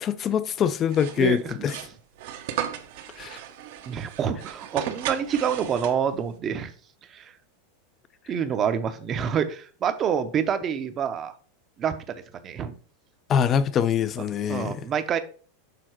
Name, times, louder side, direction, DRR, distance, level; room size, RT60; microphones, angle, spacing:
voice 1, 0.0-1.8 3.2-3.4 13.3-14.9, left 8 dB, 30° left, 0.4 m, -24 dB
sound 1, 0.9-6.3, right 10 dB, 65° right, 0.8 m, -36 dB
voice 2, 1.2-1.5 3.3-3.4 3.9-6.7 7.1-7.3 8.3-11.3 11.8-12.7 14.5-15.2, right 8 dB, 25° right, 0.6 m, -27 dB
6.6 x 3.7 x 4.5 m
supercardioid pair, 145°, 0 cm